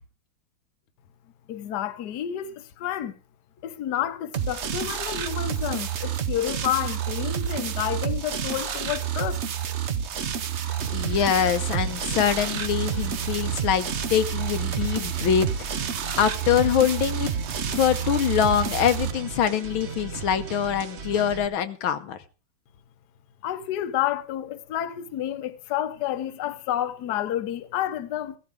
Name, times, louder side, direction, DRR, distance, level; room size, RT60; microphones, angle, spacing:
voice 1, 1.5-3.1 3.6-9.4 23.4-28.4, left 12 dB, 60° left, 1.3 m, -30 dB
sound 1, 4.3-19.1, right 8 dB, 65° right, 0.6 m, -29 dB
sound 2, 10.8-21.5, right 4 dB, 45° right, 1.0 m, -37 dB
voice 2, 10.9-15.5 16.2-17.3 17.7-22.2, left 9 dB, 75° left, 1.6 m, -24 dB
15.5 x 13.5 x 3.6 m
omnidirectional pair, 2.3 m